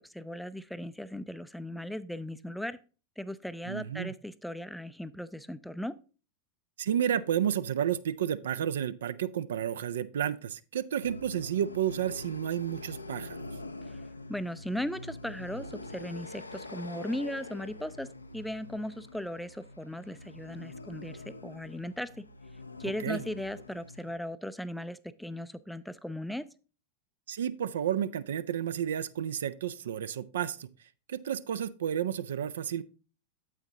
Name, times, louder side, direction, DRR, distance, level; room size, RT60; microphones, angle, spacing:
voice 1, 0.0-2.8 3.2-6.0 13.8-14.0 14.3-22.1 22.8-26.5, left 1 dB, ahead, 0.4 m, -37 dB
voice 2, 3.7-4.1 6.8-13.4 23.0-23.2 27.3-30.7 31.1-32.8, right 9 dB, 60° right, 0.4 m, -31 dB
sound 1, 11.0-24.1, left 2 dB, 80° left, 0.5 m, -44 dB
9.2 x 7.9 x 2.8 m
figure-of-eight pair, 90°, 0 cm